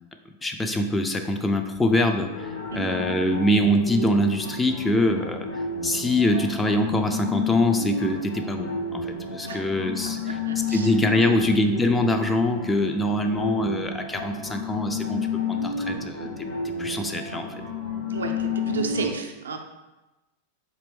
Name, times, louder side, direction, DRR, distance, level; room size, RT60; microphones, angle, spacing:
voice 1, 0.4-5.5 5.8-10.2 10.7-17.5, left 1 dB, 10° left, 5 dB, 0.3 m, -24 dB
sound 1, 2.3-19.1, left 4 dB, 65° left, 1.2 m, -31 dB
voice 2, 10.0-10.9 11.2-11.5 18.1-19.6, right 5 dB, 70° right, 4 dB, 0.4 m, -32 dB
4.1 x 2.6 x 3.4 m, 1.1 s
figure-of-eight pair, 90°, 0 cm